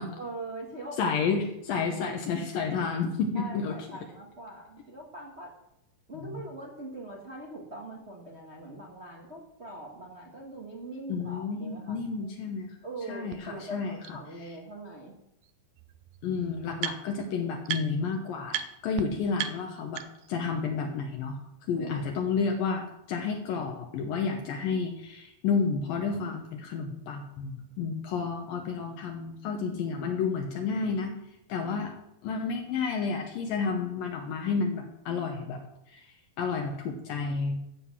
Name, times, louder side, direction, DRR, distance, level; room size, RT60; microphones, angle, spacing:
voice 1, 0.2-1.2 1.7-2.0 3.3-5.5 6.1-12.3 12.8-15.2 21.7-22.1, right 2 dB, 55° right, -1 dB, 0.7 m, -42 dB
voice 2, 1.0-3.7 6.1-6.4 11.1-12.7 13.1-13.9 16.2-20.0 20.3-21.4 21.7-31.2 31.5-31.9 32.2-35.6 35.9-36.1 36.4-37.6, left 5 dB, 75° left, 2 dB, 2.7 m, -31 dB
sound 1, 13.3-13.4 14.0-14.1 15.4-15.5 15.8-17.3 17.6-18.1 18.5-18.7 19.0-19.1 19.4-20.4, right 11 dB, 85° right, 2.6 m, -36 dB
14.0 x 7.7 x 6.2 m, 0.83 s
omnidirectional pair, 4.3 m